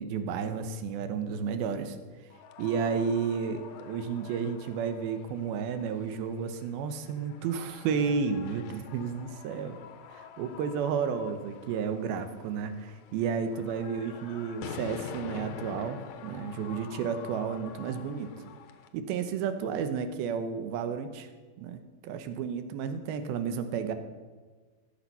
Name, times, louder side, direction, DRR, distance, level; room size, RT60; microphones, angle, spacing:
voice 1, 0.0-2.0 2.6-9.8 10.1-18.3 18.9-21.3 21.6-23.9, right 6 dB, 85° right, 9 dB, 2.7 m, -32 dB
sound 1, 2.3-18.9, left 7 dB, 80° left, 1.6 m, -47 dB
18.0 x 7.4 x 5.4 m, 1.4 s
omnidirectional pair, 4.2 m